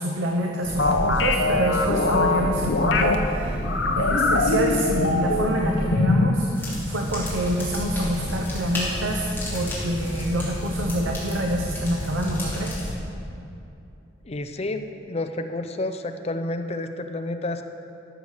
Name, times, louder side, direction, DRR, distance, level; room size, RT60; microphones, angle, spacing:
voice 1, 0.0-3.6 4.0-9.2 9.5-12.9, equal, 85° right, 1 dB, 0.9 m, -26 dB
sound 1, 0.6-5.9, equal, 10° right, 1.6 m, -29 dB
sound 2, 0.8-3.2 3.6-5.5 5.9-6.4, left 2 dB, 70° left, 0.9 m, -22 dB
sound 3, 6.5-12.9, left 1 dB, 10° left, 2.9 m, -31 dB
voice 2, 14.2-14.8 15.1-17.6, left 2 dB, 35° left, 8 dB, 0.6 m, -30 dB
13.5 x 6.7 x 6.5 m, 2.7 s
head